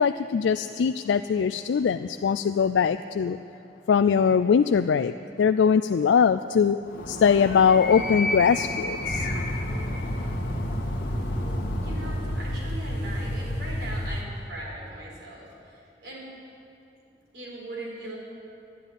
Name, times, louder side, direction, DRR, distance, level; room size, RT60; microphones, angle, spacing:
voice 1, 0.0-3.4 3.9-6.8 7.1-9.3, left 6 dB, 85° left, 10 dB, 0.3 m, -21 dB
Animal, 6.8-12.7, left 1 dB, 50° left, 1.7 m, -33 dB
sound 1, 9.0-14.2, left 1 dB, 65° left, 1.6 m, -30 dB
voice 2, 11.4-16.3 17.3-18.1, right 1 dB, 70° right, -4 dB, 4.7 m, -39 dB
12.0 x 11.0 x 9.9 m, 2.7 s
head